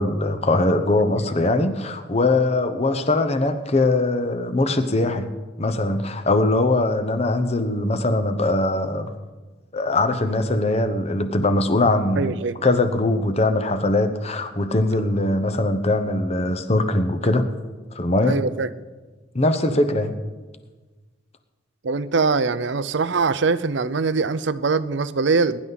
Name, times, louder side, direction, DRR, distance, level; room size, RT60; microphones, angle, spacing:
voice 1, 0.0-5.3 5.6-9.2 9.7-17.5 17.9-18.4 19.3-20.2, left 2 dB, 30° left, 8 dB, 0.9 m, -21 dB
voice 2, 12.2-12.6 18.2-18.7 21.8-25.6, right 4 dB, 60° right, 14 dB, 0.5 m, -22 dB
21.0 x 11.0 x 4.0 m, 1.3 s
head